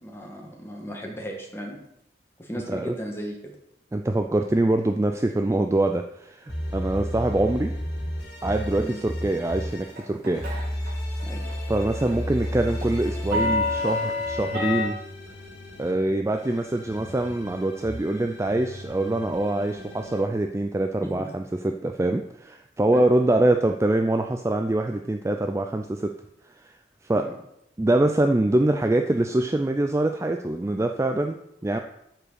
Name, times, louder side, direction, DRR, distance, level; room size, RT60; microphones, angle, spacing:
voice 1, 0.0-1.8 2.4-3.4 8.8-9.0 11.3-11.4 21.0-21.1 22.9-23.0 27.1-27.3, equal, 15° left, 0 dB, 1.5 m, -36 dB
voice 2, 3.9-7.7 8.4-10.4 11.7-15.0 15.8-26.1 26.6-26.7 27.0-27.3 27.8-31.8, right 1 dB, 15° right, 5 dB, 0.3 m, -24 dB
sound 1, 6.5-9.9 10.3-15.9 16.3-20.2, equal, 65° left, 3.0 m, -34 dB
sound 2, 10.0-10.9 11.2-11.5 11.8-14.8, left 2 dB, 50° right, 2.7 m, -27 dB
7.4 x 4.9 x 6.4 m, 0.80 s
head